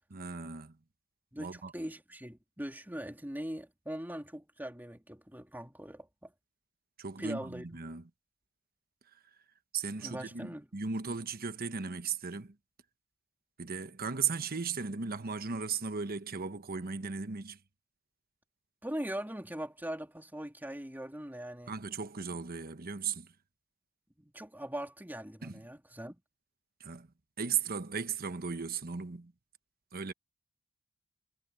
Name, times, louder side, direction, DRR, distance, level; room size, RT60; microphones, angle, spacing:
voice 1, 0.1-0.8 1.4-1.7 7.0-8.0 9.7-12.6 13.6-17.6 21.7-23.3 25.4-25.6 26.8-27.1 27.4-29.3 29.9-30.1, right 6 dB, 45° right, 1.1 m, -36 dB
voice 2, 1.3-6.3 7.2-7.7 10.0-10.7 18.8-21.7 24.2-26.2, right 1 dB, 10° right, 2.7 m, -41 dB
head